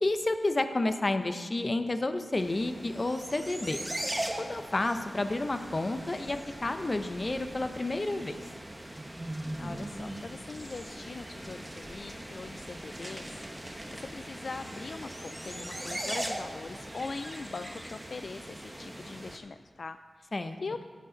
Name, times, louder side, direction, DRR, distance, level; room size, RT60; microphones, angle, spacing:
voice 1, 0.0-3.8 4.4-8.3 20.3-20.6, left 2 dB, 35° left, 8 dB, 0.7 m, -30 dB
sound 1, 2.4-19.4, right 1 dB, 10° right, 1.0 m, -40 dB
voice 2, 9.6-20.3 20.6-20.8, left 4 dB, 60° left, 9 dB, 0.3 m, -42 dB
13.0 x 8.2 x 3.9 m, 1.5 s
wide cardioid pair, 85°, 0 cm